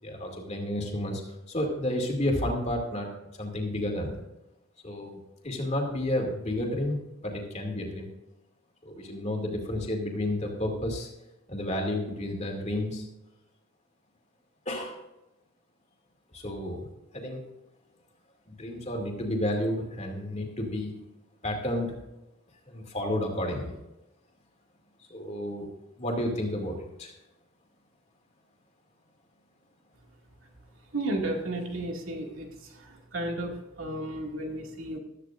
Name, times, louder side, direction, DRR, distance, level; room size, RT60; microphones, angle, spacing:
voice 1, 0.0-1.2 1.5-3.1 3.4-4.2 4.8-7.0 7.2-8.1 8.8-11.1 11.5-13.0 14.7-14.9 16.3-16.9 17.1-17.4 18.5-20.9 21.4-21.9 22.7-23.7 25.1-25.7 26.0-27.1, left 1 dB, 30° left, 1 dB, 2.6 m, -31 dB
voice 2, 30.9-32.5 33.1-33.5 33.8-35.0, right 1 dB, 70° right, 1 dB, 2.3 m, -32 dB
15.0 x 13.0 x 2.6 m, 0.95 s
head